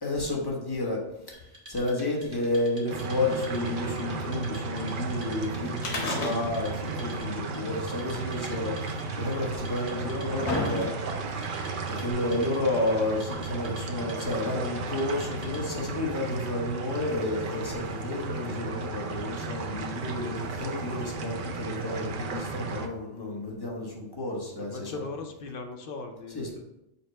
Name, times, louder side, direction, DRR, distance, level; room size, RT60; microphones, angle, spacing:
voice 1, 0.0-1.3 1.7-8.7 9.2-10.9 11.9-25.0 26.3-26.6, left 2 dB, 25° left, -2 dB, 0.9 m, -31 dB
Wood, 1.3-15.9, right 1 dB, 30° right, 0.9 m, -49 dB
sound 1, 2.9-22.9, right 4 dB, 60° right, 0.6 m, -34 dB
sound 2, 5.8-6.8 7.1-7.2 8.1-8.2 9.1-9.2 9.9-11.3 12.1-12.2, left 2 dB, 85° left, 1.3 m, -31 dB
voice 2, 23.1-23.4 24.6-26.4, left 3 dB, 60° left, 4 dB, 0.7 m, -39 dB
5.4 x 2.1 x 4.3 m, 0.88 s
omnidirectional pair, 1.1 m